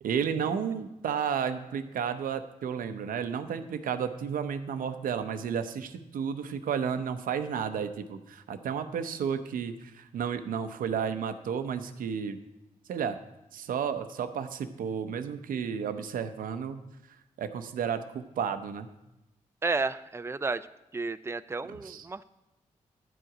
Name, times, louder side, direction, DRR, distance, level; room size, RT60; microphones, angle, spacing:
voice 1, 0.0-12.4 12.9-13.2 13.5-16.8 17.4-18.9 21.7-22.1, right 7 dB, 80° right, 9 dB, 0.7 m, -32 dB
voice 2, 19.6-20.7 20.9-22.2, right 3 dB, 20° right, 13 dB, 0.5 m, -32 dB
11.0 x 7.9 x 4.9 m, 0.94 s
supercardioid pair, 50°, 14 cm